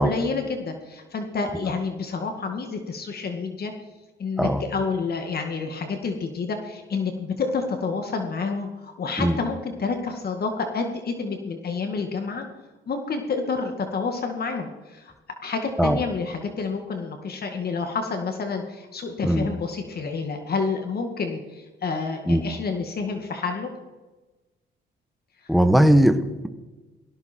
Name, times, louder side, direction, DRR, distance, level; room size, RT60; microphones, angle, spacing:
voice 1, 0.0-3.7 4.2-12.4 12.9-15.1 15.4-23.7 25.4-25.5, left 4 dB, 50° left, 5 dB, 2.2 m, -29 dB
voice 2, 25.5-26.5, equal, ahead, 9 dB, 1.4 m, -19 dB
19.0 x 16.5 x 4.6 m, 1.2 s
cardioid pair, 90°, 20 cm